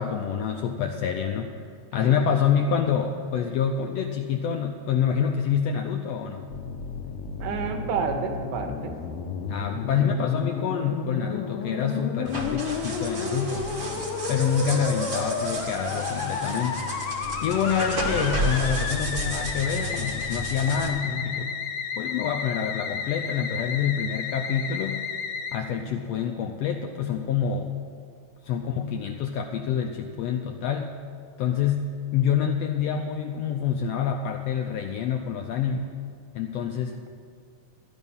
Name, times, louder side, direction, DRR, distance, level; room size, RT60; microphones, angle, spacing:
voice 1, 0.0-1.5 1.9-6.5 9.5-13.7 14.3-16.8 17.4-21.6 22.0-25.0 25.5-27.7 28.4-31.0 31.4-35.9 36.3-37.1, left 7 dB, 80° left, 4 dB, 1.5 m, -27 dB
Musical instrument, 6.5-25.6, left 6 dB, 65° left, 1.6 m, -32 dB
voice 2, 7.4-8.9, right 5 dB, 80° right, 5 dB, 2.4 m, -30 dB
sound 1, 12.2-20.9, right 1 dB, 45° right, 0.9 m, -32 dB
13.5 x 9.8 x 5.4 m, 2.3 s
omnidirectional pair, 3.4 m